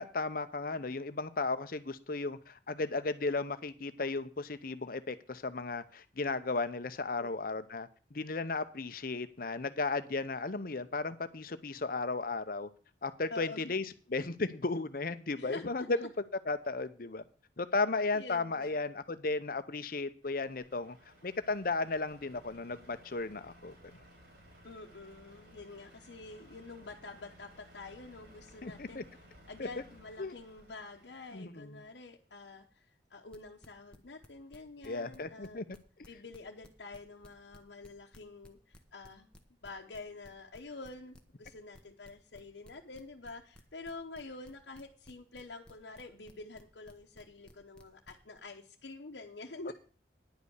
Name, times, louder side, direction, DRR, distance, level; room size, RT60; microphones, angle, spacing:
voice 1, 0.0-12.7 13.0-13.8 14.1-16.1 16.5-17.2 17.6-21.0 21.2-23.8 28.6-29.0 29.6-29.7 30.2-30.3 31.3-31.8 34.8-35.6 49.7-49.8, left 3 dB, 50° left, 0.8 m, -35 dB
voice 2, 13.3-13.7 15.4-16.1 18.1-18.8 24.6-29.0 29.5-35.7 36.1-39.3 39.6-49.7, left 3 dB, 75° left, 1.0 m, -47 dB
Truck, 20.2-31.4, equal, 60° right, 3.4 m, -58 dB
sound 1, 33.3-35.5 35.7-48.4, equal, 5° left, 1.0 m, -57 dB
10.5 x 5.4 x 8.1 m
head